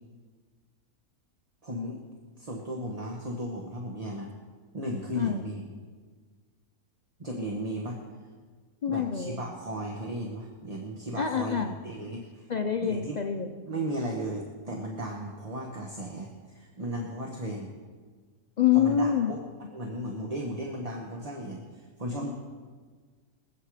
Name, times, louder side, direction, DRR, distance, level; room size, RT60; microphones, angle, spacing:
voice 1, 1.6-2.0 2.4-4.3 4.7-5.7 7.2-8.0 8.9-12.5 12.8-13.2 13.7-17.7 18.7-19.4 19.7-22.3, right 1 dB, 25° right, 0 dB, 1.2 m, -35 dB
voice 2, 5.1-5.5 8.8-9.4 11.1-11.8 12.5-13.5 18.6-19.4, left 8 dB, 80° left, 5 dB, 0.3 m, -26 dB
23.0 x 8.5 x 4.9 m, 1.6 s
omnidirectional pair, 1.7 m